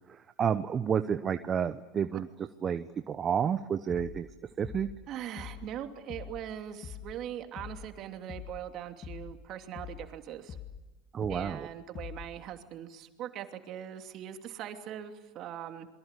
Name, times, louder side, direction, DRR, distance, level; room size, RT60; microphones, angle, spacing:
voice 1, 0.1-2.3 2.6-4.3 4.6-4.9 11.1-11.7, right 7 dB, 35° right, 10 dB, 1.0 m, -30 dB
sound 1, 3.9-4.3 4.6-5.0 5.4-5.7 6.1-6.5 6.8-7.2 7.6-7.9 8.3-8.7 9.0-9.4 9.8-10.1 10.5-10.9 11.2-11.6 12.0-12.4, left 8 dB, 40° left, 1.8 m, -44 dB
voice 2, 5.1-10.6 11.3-15.9, right 10 dB, 50° right, 6 dB, 2.8 m, -41 dB
28.0 x 23.5 x 8.4 m, 1.1 s
hypercardioid pair, 90°, 0 cm